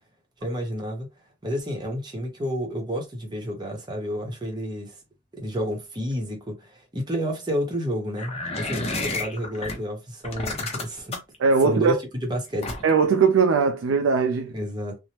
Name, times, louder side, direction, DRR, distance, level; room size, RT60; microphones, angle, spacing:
voice 1, 0.4-1.1 1.4-5.0 5.4-11.2 11.6-12.8 14.5-15.0, equal, 20° right, 0.8 m, -30 dB
sound 1, 8.2-9.7 10.2-11.4 12.6-13.1, left 2 dB, 30° left, 0.6 m, -30 dB
voice 2, 11.4-12.0 12.8-14.5, right 5 dB, 70° right, 0.3 m, -20 dB
3.1 x 2.0 x 2.8 m
head